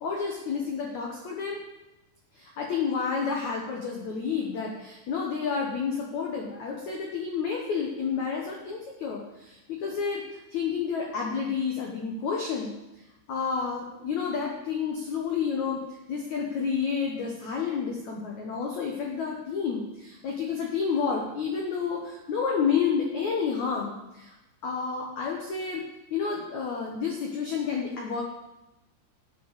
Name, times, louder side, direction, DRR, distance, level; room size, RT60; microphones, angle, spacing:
voice 1, 0.0-1.6 2.3-10.2 10.5-12.7 13.3-15.8 16.1-24.3 24.6-25.8 26.1-28.2, left 6 dB, 80° left, -1 dB, 1.6 m, -30 dB
10.0 x 6.6 x 6.3 m, 0.96 s
omnidirectional pair, 5.2 m